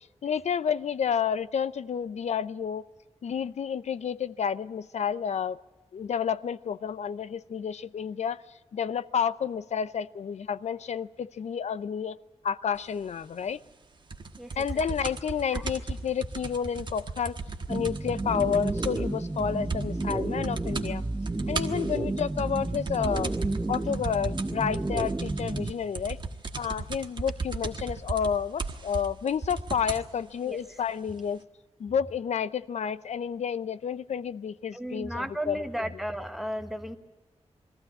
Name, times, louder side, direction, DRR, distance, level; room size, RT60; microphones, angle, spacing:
voice 1, 0.0-2.8 3.2-5.6 5.9-8.4 8.7-12.2 12.4-13.6 14.6-17.4 17.7-21.0 21.5-23.3 23.7-26.2 26.6-31.4 31.8-35.7, left 7 dB, 80° left, 14 dB, 0.6 m, -30 dB
sound 1, 14.1-19.1 19.4-19.5 19.7-20.2 20.4-20.9 21.3-30.1 30.9-31.0, right 3 dB, 45° right, 1.4 m, -36 dB
sound 2, 17.7-25.7, right 2 dB, 20° right, 0.7 m, -31 dB
voice 2, 34.7-37.0, equal, ahead, 7 dB, 1.3 m, -34 dB
22.0 x 14.5 x 9.9 m, 1.2 s
wide cardioid pair, 170°, 11 cm